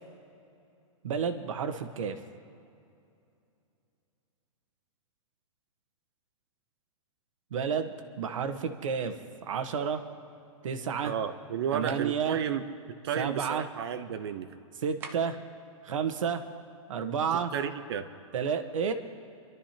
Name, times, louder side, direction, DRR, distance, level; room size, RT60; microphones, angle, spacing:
voice 1, 1.0-2.2 7.5-9.2 9.4-10.0 10.6-11.1 11.7-12.4 13.2-13.7 14.8-15.4 15.8-16.4 16.9-17.5 18.3-18.9, right 6 dB, 70° right, 8 dB, 1.3 m, -30 dB
voice 2, 11.0-12.6 13.0-14.5 17.5-18.1, right 8 dB, 50° right, 9 dB, 0.8 m, -32 dB
sound 1, 11.9-12.1 15.0-15.5, right 5 dB, 15° right, 0.5 m, -44 dB
28.5 x 12.5 x 2.9 m, 2.5 s
hypercardioid pair, 165°, 17 cm